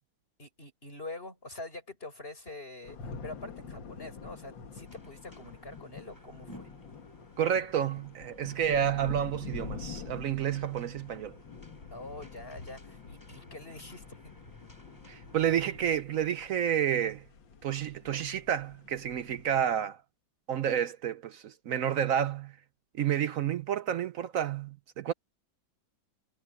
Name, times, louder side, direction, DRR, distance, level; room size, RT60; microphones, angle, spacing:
voice 1, 0.4-6.7 11.9-14.3, left 2 dB, 30° left, 6.8 m, -45 dB
sound 1, 2.8-19.6, left 5 dB, 70° left, 2.5 m, -47 dB
sound 2, 4.8-15.8, equal, 10° left, 6.7 m, -57 dB
voice 2, 7.4-11.4 15.1-17.2 17.6-20.0 20.5-22.5 23.0-25.1, right 9 dB, 70° right, 0.7 m, -30 dB
omnidirectional pair, 2.1 m